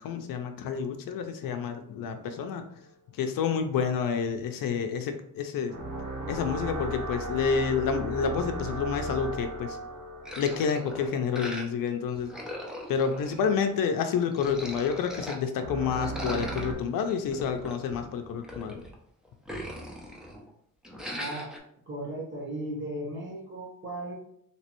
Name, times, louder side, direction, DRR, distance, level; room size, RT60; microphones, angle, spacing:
voice 1, 0.0-2.6 3.2-5.7 6.3-9.8 10.4-12.3 12.9-18.8, left 6 dB, 75° left, 7 dB, 0.5 m, -29 dB
sound 1, 5.7-11.5 15.6-16.7, right 2 dB, 65° right, 0.9 m, -36 dB
sound 2, 10.3-11.9 12.1-13.8 14.2-15.4 15.9-18.9 19.3-20.5 20.8-21.6, equal, ahead, 0.4 m, -40 dB
voice 2, 21.1-21.5 21.9-24.1, right 1 dB, 35° right, -2 dB, 1.1 m, -36 dB
3.1 x 2.9 x 2.9 m, 0.70 s
cardioid pair, 150°, 35 cm